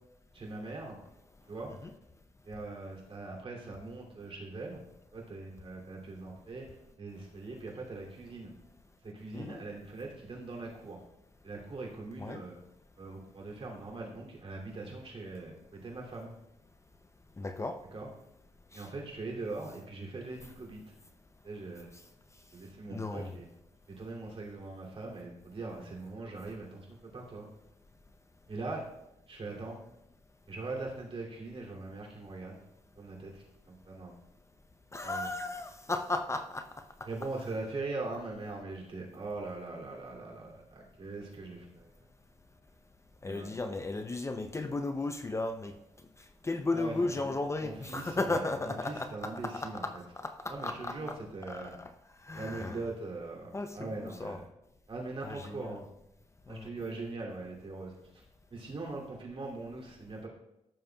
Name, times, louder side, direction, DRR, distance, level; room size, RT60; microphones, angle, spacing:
voice 1, 0.3-1.0 1.5-1.7 2.4-4.8 5.1-6.7 7.0-8.5 9.0-11.0 11.4-12.5 13.0-16.3 17.9-18.1 18.7-20.8 21.4-21.9 22.5-23.4 23.9-27.5 28.5-28.8 29.3-29.8 30.5-32.6 33.0-34.1 35.0-35.3 37.0-41.9 43.2-43.5 46.7-49.8 50.5-51.8 52.3-54.4 54.9-55.8 56.5-58.2 58.5-60.3, right 3 dB, 45° right, -2 dB, 2.6 m, -41 dB
voice 2, 17.4-17.8 18.7-18.9 22.9-23.3 34.9-36.7 43.2-45.7 46.4-51.2 51.5-51.9 52.2-52.8 53.5-54.4 55.2-55.9 56.5-56.7, left 2 dB, 25° left, 7 dB, 0.5 m, -35 dB
14.5 x 7.0 x 2.3 m, 0.88 s
cardioid pair, 100°, 12 cm